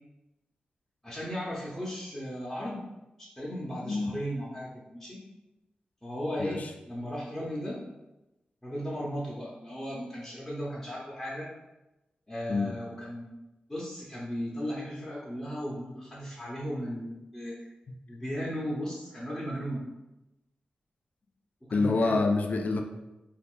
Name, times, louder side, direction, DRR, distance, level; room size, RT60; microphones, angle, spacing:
voice 1, 1.0-2.8 3.2-5.2 6.0-7.8 8.6-11.5 12.3-13.3 13.7-17.7 18.1-19.8 21.6-22.2, equal, 10° left, -7 dB, 0.7 m, -36 dB
voice 2, 3.8-4.1 6.4-6.7 12.5-12.8 17.9-18.0 21.7-22.8, left 3 dB, 55° left, 5 dB, 0.4 m, -27 dB
2.4 x 2.4 x 3.6 m, 0.99 s
wide cardioid pair, 80°, 3 cm